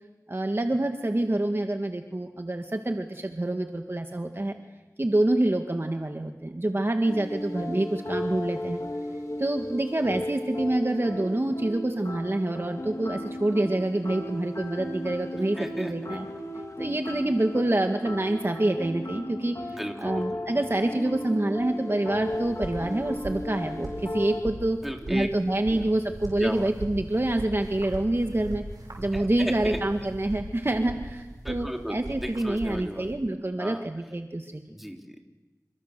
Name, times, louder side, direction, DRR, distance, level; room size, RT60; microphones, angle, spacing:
voice 1, 0.3-4.5 5.0-8.8 9.4-16.3 16.8-24.8 25.1-28.6 29.0-34.6, right 1 dB, 40° right, 4 dB, 1.7 m, -27 dB
sound 1, 7.1-24.4, left 1 dB, 60° left, 3.6 m, -35 dB
voice 2, 15.6-16.2 19.8-20.2 24.8-25.3 25.7-25.8 26.4-26.7 29.1-29.8 31.4-33.1 33.6-33.8 34.7-35.2, equal, 5° right, 2 dB, 3.6 m, -35 dB
sound 2, 22.2-33.1, right 1 dB, 90° right, 7.9 m, -40 dB
28.5 x 25.0 x 6.8 m, 1.2 s
wide cardioid pair, 50°, 6 cm